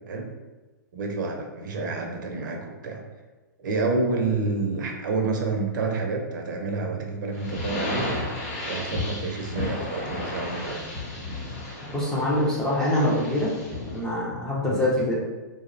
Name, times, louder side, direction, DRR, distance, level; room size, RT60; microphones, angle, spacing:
voice 1, 0.9-3.0 3.6-8.1 8.6-10.9 14.6-14.8, right 3 dB, 65° right, 2 dB, 0.5 m, -28 dB
sound 1, 7.3-14.0, left 2 dB, 40° left, 0.7 m, -33 dB
voice 2, 11.9-13.5 13.9-15.1, left 1 dB, 5° left, -6 dB, 0.4 m, -24 dB
2.6 x 2.0 x 2.4 m, 1.2 s
hypercardioid pair, 145°, 11 cm